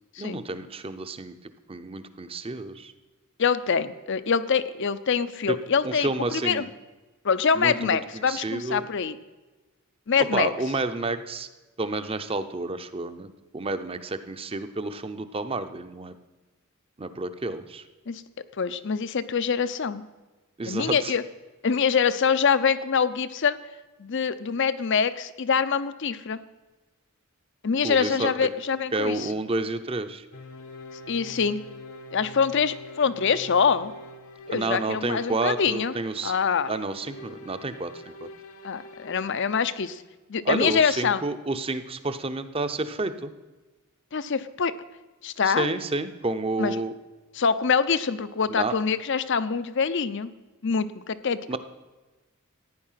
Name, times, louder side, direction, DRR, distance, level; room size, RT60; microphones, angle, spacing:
voice 1, 0.2-1.4 1.7-2.9 5.5-5.6 5.8-6.7 7.5-8.0 8.3-8.9 10.3-11.5 11.8-13.3 13.5-16.1 17.0-17.8 20.6-21.1 27.8-28.5 28.9-30.3 34.5-36.3 36.7-38.3 40.4-43.3 45.4-46.9 48.5-48.7 51.5-51.6, right 2 dB, 25° right, 10 dB, 0.7 m, -30 dB
voice 2, 3.4-6.1 6.4-6.6 7.2-9.2 10.1-10.5 18.1-18.2 18.6-20.0 20.6-21.2 21.6-23.6 24.0-26.4 27.6-29.3 31.1-31.6 32.1-33.9 34.5-35.9 36.2-36.7 38.6-40.0 40.3-41.2 44.1-44.7 45.2-45.7 46.6-46.8 47.3-50.3 50.6-51.6, left 6 dB, 60° left, 14 dB, 0.6 m, -25 dB
sound 1, 30.3-39.6, left 1 dB, 80° left, 1.2 m, -44 dB
15.0 x 9.8 x 5.7 m, 1.2 s
head